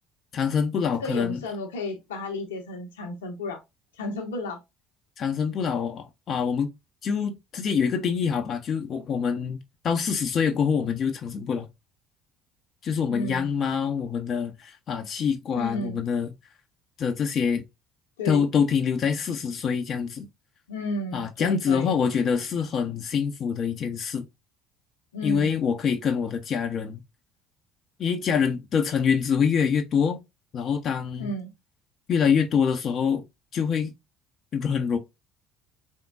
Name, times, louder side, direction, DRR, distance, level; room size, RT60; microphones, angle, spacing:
voice 1, 0.3-1.4 5.2-6.7 7.0-9.6 9.8-11.7 12.8-16.3 17.0-17.6 18.2-20.3 21.1-24.2 25.2-27.0 28.0-30.2 30.5-31.3 32.1-33.2 33.5-33.9 34.5-35.0, left 6 dB, 45° left, 0.6 m, -25 dB
voice 2, 1.0-3.6 4.0-4.6 13.1-13.6 15.5-16.0 18.2-18.4 20.7-21.9 25.1-25.5 31.2-31.5, left 1 dB, 75° left, 0.9 m, -32 dB
3.7 x 3.6 x 2.3 m
figure-of-eight pair, 55°, 0 cm